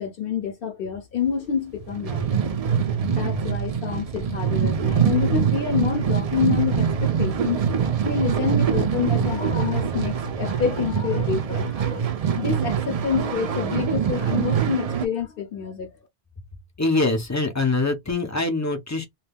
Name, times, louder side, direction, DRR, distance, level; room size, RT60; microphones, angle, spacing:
voice 1, 0.0-2.4 3.1-7.6 8.0-15.9, left 7 dB, 60° left, 0.7 m, -28 dB
sound 1, 1.8-15.0, right 7 dB, 60° right, 0.4 m, -24 dB
voice 2, 16.8-19.1, left 3 dB, 25° left, 0.3 m, -23 dB
2.2 x 2.2 x 3.3 m
omnidirectional pair, 1.1 m